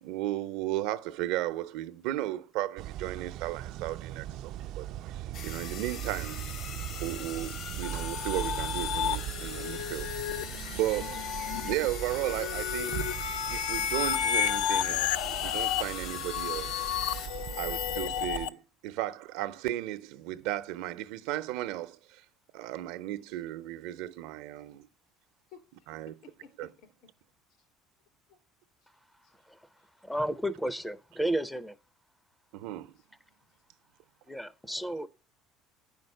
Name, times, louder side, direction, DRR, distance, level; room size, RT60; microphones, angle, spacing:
voice 1, 0.0-4.9 5.1-6.4 7.0-10.1 10.7-11.2 11.6-13.1 13.5-16.8 17.6-22.2 22.5-24.9 25.9-26.1 26.6-26.7 32.5-32.9, right 15 dB, 80° right, 0.8 m, -35 dB
sound 1, 2.8-18.5, right 12 dB, 60° right, 0.4 m, -40 dB
sound 2, 5.3-17.3, left 7 dB, 50° left, 0.9 m, -42 dB
sound 3, 7.8-18.5, left 10 dB, 90° left, 0.6 m, -32 dB
voice 2, 25.5-27.1 27.6-27.7 28.3-28.4 28.8-28.9 29.2-29.5 29.8-29.9 33.0-33.1 33.5-33.6, left 6 dB, 70° left, 3.8 m, -56 dB
voice 3, 30.0-31.8 34.3-35.1, right 1 dB, ahead, 0.4 m, -32 dB
9.9 x 5.3 x 6.5 m
cardioid pair, 145°, 0 cm